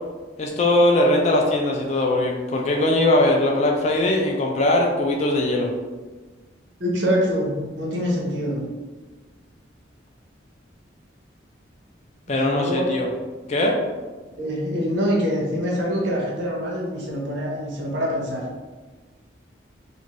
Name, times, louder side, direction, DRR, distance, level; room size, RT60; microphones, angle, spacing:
voice 1, 0.4-5.7 12.3-13.1 13.5-13.8, left 1 dB, 35° left, 0 dB, 0.3 m, -20 dB
voice 2, 6.8-8.6 12.3-13.0 14.4-18.4, equal, 70° right, -3 dB, 0.7 m, -25 dB
2.5 x 2.5 x 3.0 m, 1.3 s
head